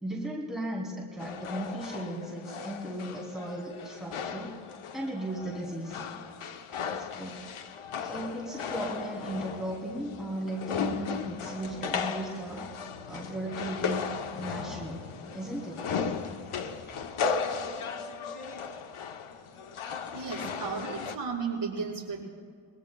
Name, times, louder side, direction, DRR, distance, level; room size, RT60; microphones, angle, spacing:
voice 1, 0.0-4.5 4.9-6.0 6.9-7.3 8.0-12.6 13.1-14.0 14.4-15.9, right 1 dB, ahead, -5 dB, 2.9 m, -36 dB
sound 1, 1.2-21.2, left 6 dB, 90° left, 0.9 m, -36 dB
voice 2, 20.1-22.2, right 5 dB, 55° right, -6 dB, 4.9 m, -34 dB
28.5 x 21.5 x 2.3 m, 2.1 s
wide cardioid pair, 100°, 49 cm